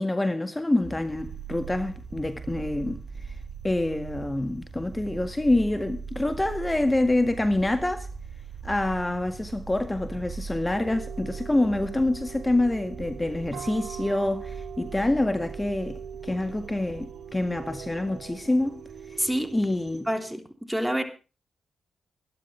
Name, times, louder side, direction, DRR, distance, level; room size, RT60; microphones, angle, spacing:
voice 1, 0.0-3.3 3.6-8.1 8.6-18.8 19.1-19.2 19.5-20.1, left 2 dB, 20° left, 1.8 m, -26 dB
sound 1, 0.8-20.0, right 6 dB, 60° right, 3.8 m, -41 dB
sound 2, 10.7-20.3, right 8 dB, 80° right, 2.0 m, -42 dB
voice 2, 19.2-19.5 20.1-21.0, equal, 5° right, 3.2 m, -27 dB
22.0 x 12.0 x 3.3 m
supercardioid pair, 45°, 0 cm